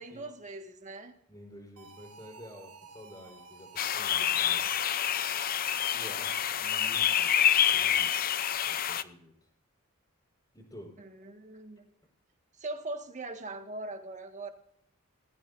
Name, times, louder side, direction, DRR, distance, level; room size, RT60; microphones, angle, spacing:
voice 1, 0.0-1.1 11.0-11.9 12.6-14.5, right 2 dB, 35° right, 5 dB, 1.7 m, -41 dB
voice 2, 1.3-5.1 5.9-7.3 7.7-8.1 8.6-9.5 10.5-11.0, equal, 20° left, -1 dB, 4.1 m, -50 dB
sound 1, 1.8-8.0, right 4 dB, 80° right, 1.5 m, -52 dB
sound 2, 3.8-9.0, left 9 dB, 40° left, 0.5 m, -27 dB
20.0 x 14.0 x 2.6 m, 0.71 s
head